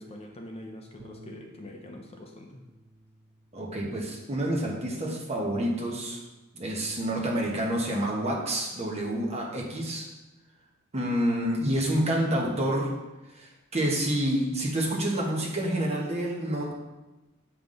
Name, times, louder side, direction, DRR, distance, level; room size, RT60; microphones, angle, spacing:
voice 1, 0.0-2.6, left 1 dB, 30° left, 2 dB, 0.6 m, -44 dB
Bass guitar, 1.0-7.2, equal, 80° right, 0.9 m, -56 dB
voice 2, 3.5-6.2 6.5-10.1 10.9-12.9 13.3-16.7, right 1 dB, 30° right, -2 dB, 1.3 m, -28 dB
6.9 x 5.7 x 3.9 m, 1.1 s
head